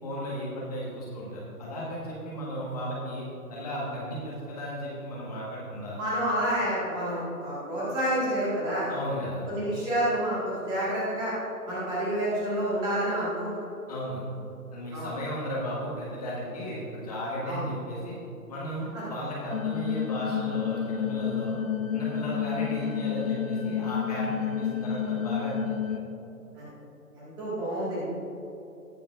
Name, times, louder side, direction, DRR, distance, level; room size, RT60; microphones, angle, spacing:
voice 1, 0.0-6.0 8.9-9.5 13.9-14.2 14.7-18.1 18.5-21.6 21.9-26.0, equal, 25° left, -5 dB, 1.4 m, -35 dB
voice 2, 6.0-8.9 9.5-11.3 11.7-13.5 14.9-15.1 17.5-17.6 26.6-26.7 27.1-28.0, right 1 dB, 10° right, -8 dB, 1.7 m, -29 dB
sound 1, 19.5-26.0, left 8 dB, 60° left, 1.0 m, -30 dB
18.5 x 7.2 x 2.5 m, 2.9 s
figure-of-eight pair, 150°, 46 cm